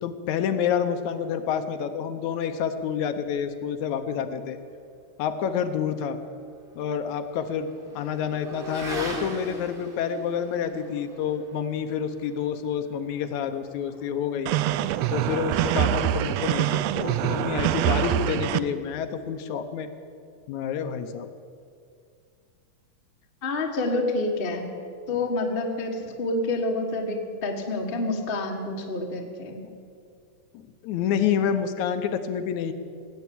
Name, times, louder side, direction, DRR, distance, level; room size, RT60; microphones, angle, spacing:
voice 1, 0.0-4.6 5.2-6.2 6.8-7.7 8.0-14.5 15.1-19.9 20.5-21.3 25.1-25.2 26.0-26.2 30.5-32.7, left 8 dB, 75° left, 8 dB, 2.1 m, -28 dB
Motorcycle / Accelerating revving vroom, 6.0-14.7, right 2 dB, 25° right, 1.5 m, -42 dB
sound 1, 14.5-18.6, right 13 dB, 85° right, 1.4 m, -25 dB
voice 2, 23.4-24.7 25.1-29.6, left 2 dB, 35° left, 2 dB, 0.9 m, -28 dB
18.5 x 8.3 x 8.4 m, 2.3 s
omnidirectional pair, 3.4 m